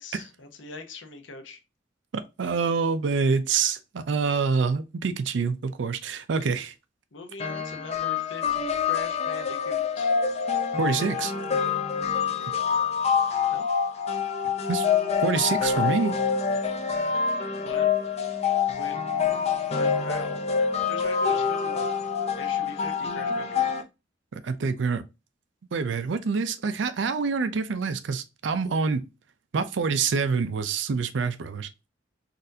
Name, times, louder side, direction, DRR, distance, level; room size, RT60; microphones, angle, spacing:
voice 1, 0.0-1.6 7.1-10.1 13.5-13.7 17.5-17.9 18.7-19.1 19.6-20.4 20.8-21.9 22.4-23.7, left 3 dB, 80° left, 0.8 m, -41 dB
voice 2, 2.1-6.7 10.8-11.3 14.7-14.8 15.2-16.1 24.3-25.0 25.7-29.0 29.5-31.7, right 5 dB, 75° right, 0.5 m, -26 dB
sound 1, 7.4-23.8, left 6 dB, 35° left, 0.5 m, -26 dB
4.1 x 2.6 x 2.6 m
head